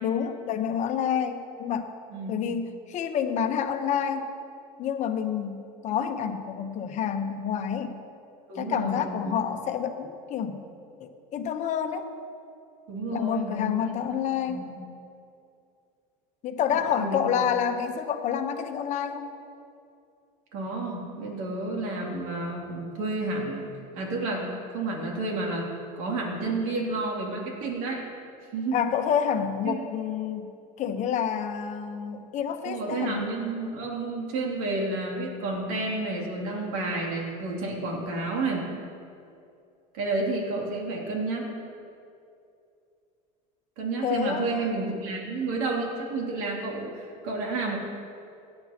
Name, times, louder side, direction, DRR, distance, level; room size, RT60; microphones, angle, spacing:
voice 1, 0.0-1.9 2.3-4.3 4.8-8.0 8.5-10.6 11.0-12.1 13.1-14.7 16.4-19.3 28.7-30.5 30.8-33.3 44.0-44.9, left 8 dB, 45° left, 6 dB, 1.0 m, -28 dB
voice 2, 2.1-2.5 8.5-9.3 12.9-13.7 14.1-14.2 14.5-14.8 16.7-17.5 20.5-23.7 23.9-28.0 28.5-28.8 29.6-29.8 32.6-38.7 39.9-41.5 43.8-47.8, right 2 dB, 80° right, -1 dB, 2.8 m, -31 dB
17.5 x 9.8 x 2.9 m, 2.5 s
supercardioid pair, 125°, 18 cm